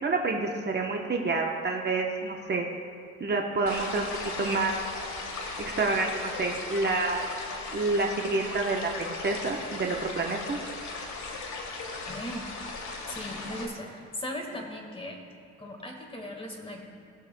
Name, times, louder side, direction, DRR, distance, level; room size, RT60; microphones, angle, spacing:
voice 1, 0.0-2.7 3.2-4.1 4.4-4.7 5.6-7.2 7.7-10.6, right 3 dB, 35° right, 1 dB, 1.0 m, -28 dB
sound 1, 3.7-13.7, left 3 dB, 70° left, 1.6 m, -37 dB
voice 2, 12.1-12.5 13.1-15.2 15.6-16.8, left 1 dB, 20° left, 1 dB, 1.6 m, -38 dB
18.5 x 7.0 x 2.2 m, 2.6 s
cardioid pair, 90°, 30 cm